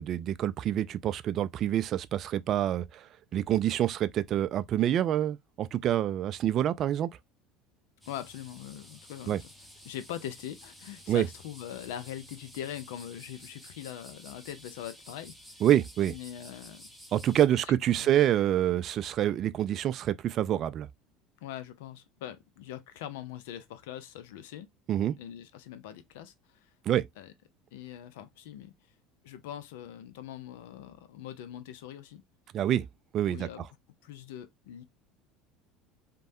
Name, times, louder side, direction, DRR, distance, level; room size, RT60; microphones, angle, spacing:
voice 1, 0.0-3.1 3.3-7.1 9.3-9.4 11.1-11.3 15.6-16.1 17.1-20.9 24.9-25.2 26.9-27.1 32.5-32.9 33.1-33.5, right 11 dB, 50° right, 0.3 m, -27 dB
sound 1, 8.0-17.5, equal, ahead, 0.9 m, -52 dB
voice 2, 8.1-9.5 9.8-15.3 16.1-16.9 17.5-17.6 18.0-18.1 21.4-24.7 25.2-26.7 27.2-27.3 27.7-28.7 29.2-32.2 33.3-33.7 34.0-34.8, left 11 dB, 75° left, 0.5 m, -42 dB
3.1 x 2.2 x 2.6 m
hypercardioid pair, 80°, 0 cm